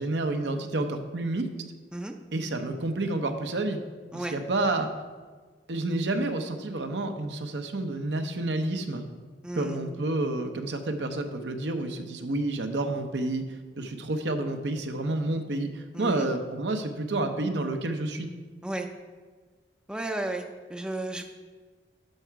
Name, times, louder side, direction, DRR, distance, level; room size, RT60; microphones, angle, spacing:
voice 1, 0.0-1.5 2.3-3.8 4.1-4.9 5.7-9.0 9.6-13.5 13.8-18.3, right 2 dB, 70° right, 6 dB, 0.8 m, -29 dB
voice 2, 9.4-9.8 15.9-16.3 18.6-18.9 19.9-21.2, right 1 dB, 5° right, 4 dB, 0.5 m, -33 dB
12.0 x 4.9 x 4.6 m, 1.4 s
head